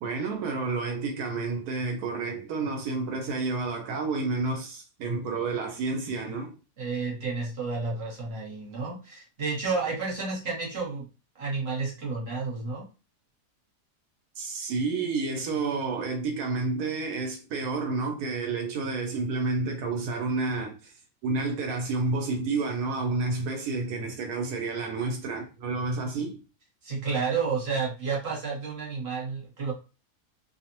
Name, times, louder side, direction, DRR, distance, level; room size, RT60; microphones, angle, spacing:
voice 1, 0.0-6.5 14.4-20.9 21.2-26.4, right 3 dB, 75° right, 1.1 m, -30 dB
voice 2, 6.8-11.1 11.3-12.9 26.8-29.7, right 4 dB, 45° right, 1.0 m, -31 dB
2.8 x 2.0 x 2.9 m
omnidirectional pair, 1.7 m